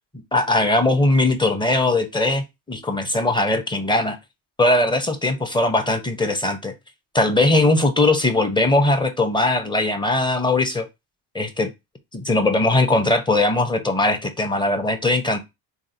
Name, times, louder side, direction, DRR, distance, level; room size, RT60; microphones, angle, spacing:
voice 1, 0.3-4.2 4.6-6.7 7.1-10.9 11.3-11.7 12.1-15.4, left 2 dB, 10° left, 0.8 m, -20 dB
3.8 x 3.2 x 2.7 m
cardioid pair, 90°, 43 cm